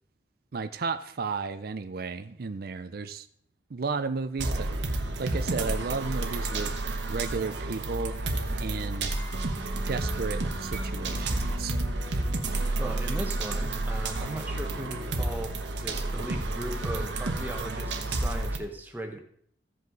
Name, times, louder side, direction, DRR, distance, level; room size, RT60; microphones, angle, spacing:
voice 1, 0.5-3.3 3.7-6.7 7.1-8.2 8.6-9.1 9.9-11.8, right 4 dB, 55° right, 10 dB, 0.5 m, -33 dB
sound 1, 4.4-18.6, right 2 dB, 90° right, 1.2 m, -30 dB
voice 2, 12.8-19.2, right 1 dB, 10° right, 3 dB, 1.2 m, -37 dB
15.5 x 5.4 x 3.9 m, 0.63 s
head